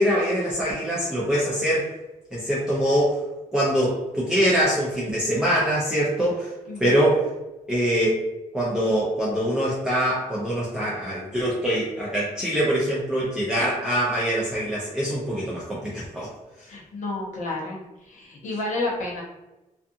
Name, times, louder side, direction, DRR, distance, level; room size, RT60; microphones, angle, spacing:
voice 1, 0.0-1.9 2.3-3.2 3.5-6.5 6.8-7.2 7.7-8.2 8.5-16.3, equal, 5° right, -8 dB, 0.5 m, -23 dB
voice 2, 6.7-7.0 16.6-19.2, left 2 dB, 65° left, -3 dB, 0.8 m, -31 dB
2.4 x 2.4 x 2.6 m, 1.0 s
wide cardioid pair, 160°, 14 cm